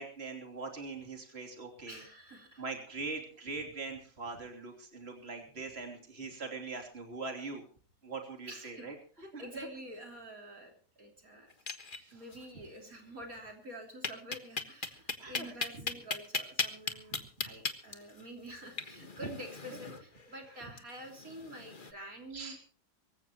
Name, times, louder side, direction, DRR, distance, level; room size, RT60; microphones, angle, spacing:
voice 1, 0.0-2.0 2.6-7.6 8.0-8.9 9.3-9.4 11.8-12.2 15.2-15.5 17.1-17.2 22.3-22.6, right 3 dB, 35° right, 3 dB, 3.4 m, -42 dB
voice 2, 1.9-2.6 8.5-11.5 12.1-22.6, right 1 dB, 55° right, 2 dB, 3.4 m, -48 dB
sound 1, 11.5-12.4 12.7-12.8 13.1-13.2 14.0-21.9, left 4 dB, 30° left, 1.5 m, -38 dB
24.5 x 15.5 x 3.0 m, 0.42 s
omnidirectional pair, 1.8 m